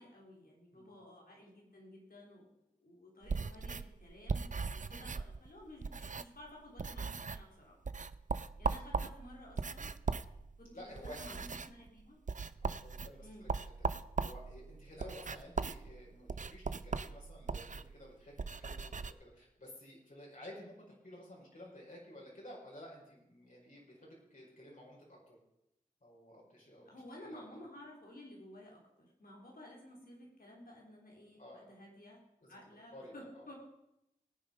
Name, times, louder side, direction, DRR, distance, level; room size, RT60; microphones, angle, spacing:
voice 1, 0.0-2.5 2.8-7.8 8.6-9.9 10.6-12.2 13.2-13.5 26.8-33.6, left 1 dB, 90° left, -2 dB, 4.2 m, -54 dB
sound 1, 3.2-6.5 6.8-7.5 7.9-19.1, right 4 dB, 60° right, 0.5 m, -39 dB
voice 2, 10.7-11.2 12.6-13.9 14.2-25.4 26.0-27.4 31.4-31.7 32.5-32.6 32.9-33.4, left 1 dB, 65° left, -4 dB, 5.1 m, -53 dB
18.5 x 8.9 x 5.3 m, 0.85 s
wide cardioid pair, 60°, 15 cm